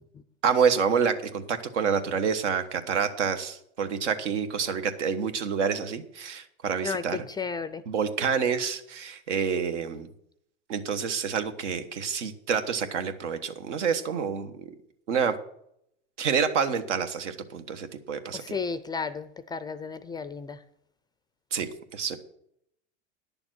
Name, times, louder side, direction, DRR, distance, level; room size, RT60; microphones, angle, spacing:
voice 1, 0.4-7.2 7.9-10.1 10.7-14.7 15.1-15.3 16.2-18.4 21.5-22.2, right 6 dB, 90° right, 8 dB, 1.3 m, -28 dB
voice 2, 6.8-7.8 18.3-20.6, left 5 dB, 15° left, 13 dB, 0.3 m, -33 dB
10.5 x 7.1 x 6.2 m, 0.74 s
supercardioid pair, 115°, 35 cm